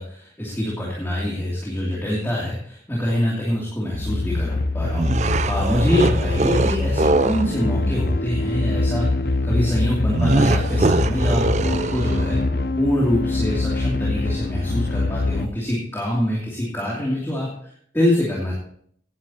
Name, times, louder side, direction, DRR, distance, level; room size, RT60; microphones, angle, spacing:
voice 1, 0.0-12.4 12.8-18.5, left 1 dB, 15° left, -5 dB, 2.9 m, -25 dB
sound 1, 3.9-15.5, left 2 dB, 55° left, 0.6 m, -24 dB
sound 2, 4.9-7.5 10.1-12.4, right 2 dB, 40° right, 0.5 m, -22 dB
16.5 x 10.0 x 2.9 m, 0.62 s
head